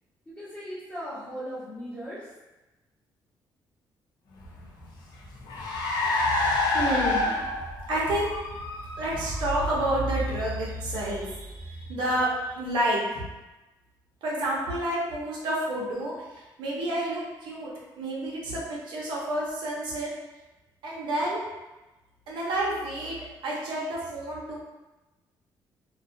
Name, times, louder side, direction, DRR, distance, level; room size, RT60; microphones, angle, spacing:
voice 1, 0.3-2.3 7.2-7.4, equal, 15° left, -11 dB, 1.2 m, -38 dB
Car, 4.4-12.2, left 2 dB, 60° left, 0.5 m, -29 dB
voice 2, 6.7-7.2 7.9-8.3 9.0-13.2 14.2-16.1 16.6-17.7 18.0-20.1 20.8-21.4 22.3-23.2 23.4-24.6, right 1 dB, 85° right, -5 dB, 0.7 m, -29 dB
2.5 x 2.4 x 2.6 m, 1.1 s
cardioid pair, 145°, 8 cm